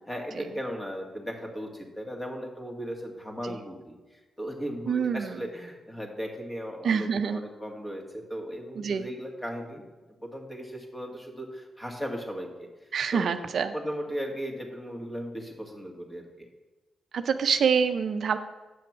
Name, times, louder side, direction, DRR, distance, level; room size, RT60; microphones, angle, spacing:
voice 1, 0.1-9.8 10.2-13.3 13.7-16.5, equal, 20° left, 1 dB, 2.1 m, -37 dB
voice 2, 4.9-5.4 6.8-7.4 8.8-9.1 12.9-13.7 17.1-18.4, right 6 dB, 65° right, 10 dB, 0.4 m, -26 dB
7.7 x 5.8 x 6.1 m, 1.2 s
hypercardioid pair, 40°, 0 cm